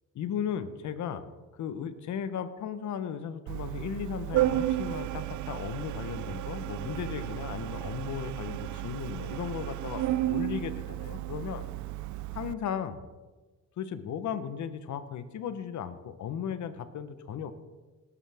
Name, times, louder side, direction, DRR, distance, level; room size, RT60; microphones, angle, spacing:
voice 1, 0.1-1.2 1.6-11.6 12.3-13.0 13.8-17.5, left 8 dB, 70° left, 11 dB, 1.1 m, -36 dB
Organ, 3.5-12.5, right 14 dB, 70° right, 0.5 m, -33 dB
18.5 x 10.0 x 3.6 m, 1.2 s
cardioid pair, 90°, 30 cm